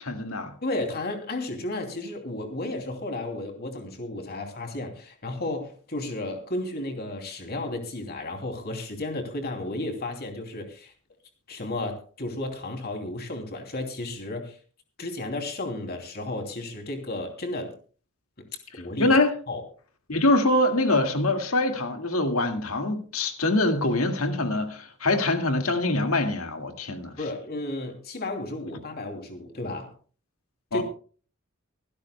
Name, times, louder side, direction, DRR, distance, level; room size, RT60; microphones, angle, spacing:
voice 1, 0.0-0.5 18.7-19.3 20.1-27.1 30.7-30.8, left 2 dB, 85° left, 2.0 m, -24 dB
voice 2, 0.6-10.9 11.5-14.6 15.0-17.7 18.4-18.5 18.7-19.1 19.5-19.6 27.2-29.9 30.7-30.8, left 2 dB, 50° left, 2.8 m, -33 dB
24.5 x 12.0 x 2.2 m
head